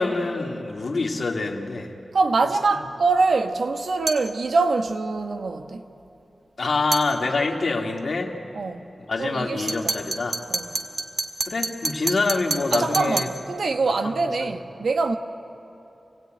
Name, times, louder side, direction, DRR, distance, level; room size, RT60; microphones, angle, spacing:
voice 1, 0.0-1.9 6.6-8.3 9.1-10.4 11.5-13.3 14.0-14.1, left 3 dB, 70° left, 1 dB, 2.3 m, -25 dB
voice 2, 2.1-5.8 8.5-8.9 9.2-9.9 10.5-10.7 12.7-15.2, right 3 dB, 85° right, 6 dB, 1.3 m, -24 dB
sound 1, 4.1-4.3 6.9-7.1 9.7-13.4, right 3 dB, 65° right, 1.8 m, -28 dB
27.5 x 16.5 x 9.2 m, 2.8 s
wide cardioid pair, 70°, 0 cm